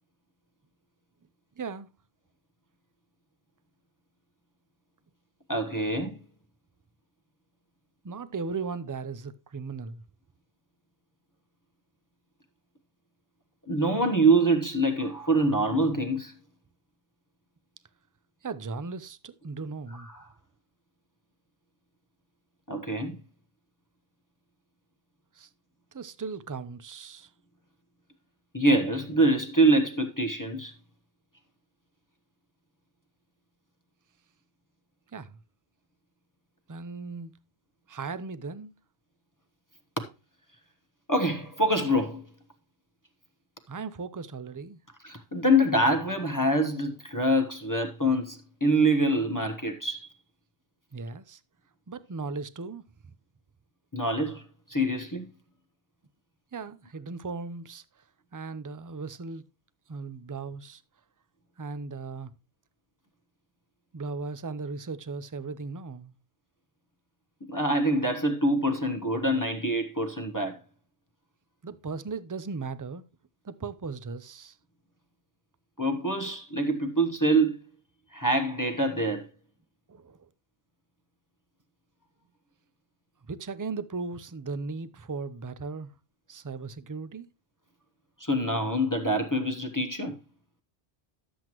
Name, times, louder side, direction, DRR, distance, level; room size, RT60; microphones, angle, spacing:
voice 1, 1.6-1.9 5.7-5.9 8.0-10.0 18.4-20.1 25.3-25.5 25.9-27.3 35.1-35.4 36.7-37.4 37.9-38.7 43.7-44.8 50.9-51.4 51.9-52.8 56.5-57.8 58.3-59.5 59.9-60.8 61.6-62.3 63.9-66.1 71.6-73.0 73.4-74.6 79.9-80.3 83.3-85.9 86.3-87.3, right 4 dB, 30° right, 0.4 m, -37 dB
voice 2, 5.5-6.2 13.7-16.3 19.9-20.2 22.7-23.2 28.5-30.7 40.0-40.1 41.1-42.3 45.0-50.1 53.9-54.4 54.7-55.3 67.5-70.6 75.8-77.6 78.1-79.3 88.2-90.2, right 1 dB, 20° left, 0.9 m, -25 dB
12.0 x 7.8 x 3.0 m
omnidirectional pair, 1.0 m